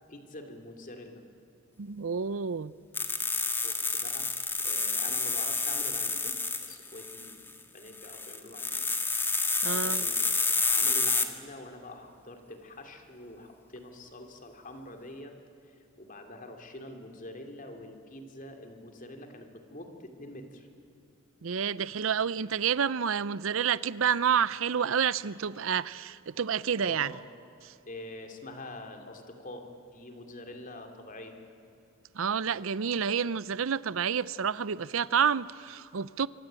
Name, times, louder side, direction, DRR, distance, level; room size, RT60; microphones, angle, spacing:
voice 1, 0.1-1.2 3.6-4.3 4.6-6.3 6.6-7.4 7.7-8.9 9.7-15.3 15.7-20.7 26.8-27.2 27.8-31.3, left 1 dB, 40° left, 3.0 m, -45 dB
voice 2, 1.8-2.7 9.6-10.0 21.4-27.1 27.6-27.7 32.2-36.3, right 7 dB, 70° right, 0.6 m, -29 dB
sound 1, 2.9-7.5 7.9-11.3, left 3 dB, 10° left, 1.7 m, -29 dB
25.5 x 25.0 x 9.0 m
head